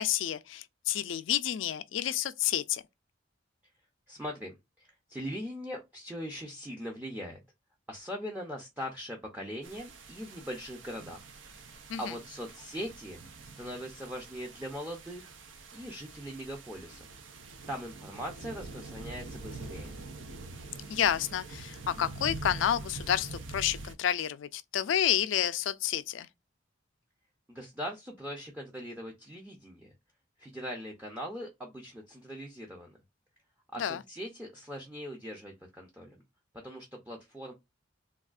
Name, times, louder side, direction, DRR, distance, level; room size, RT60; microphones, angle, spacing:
voice 1, 0.0-2.8 11.9-12.0 20.9-26.3 33.8-34.0, left 10 dB, 75° left, 0.4 m, -30 dB
voice 2, 4.1-7.4 7.9-11.3 11.6-13.2 13.5-15.3 15.7-17.1 17.7-20.0 27.5-29.9 30.4-33.0 33.7-36.2 36.6-37.5, equal, 10° right, 0.5 m, -41 dB
sound 1, 9.6-23.9, right 3 dB, 80° right, 0.6 m, -45 dB
3.4 x 2.4 x 2.3 m
head